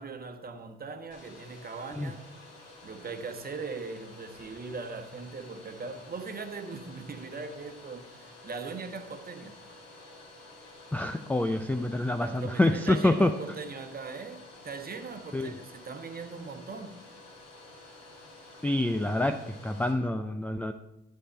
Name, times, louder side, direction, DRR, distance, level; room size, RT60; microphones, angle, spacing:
voice 1, 0.0-2.2 2.8-9.5 12.0-16.9, right 4 dB, 30° right, 1.3 m, -40 dB
Domestic sounds home sounds, 1.1-19.9, left 2 dB, 70° left, 2.4 m, -51 dB
voice 2, 10.9-13.3 15.3-15.5 18.6-20.7, left 1 dB, 5° left, 0.4 m, -27 dB
11.0 x 4.8 x 6.8 m
figure-of-eight pair, 50°, 33 cm